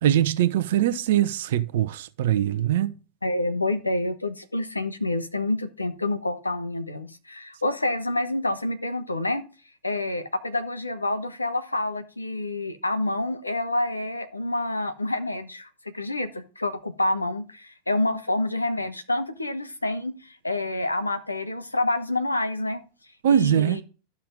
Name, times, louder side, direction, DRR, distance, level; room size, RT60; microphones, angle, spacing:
voice 1, 0.0-2.9 23.2-23.8, right 11 dB, 55° right, 0.8 m, -22 dB
voice 2, 3.2-9.4 9.8-15.7 15.9-22.8 23.3-23.8, left 2 dB, 80° left, 1.1 m, -28 dB
12.0 x 5.8 x 3.7 m
figure-of-eight pair, 90°, 0 cm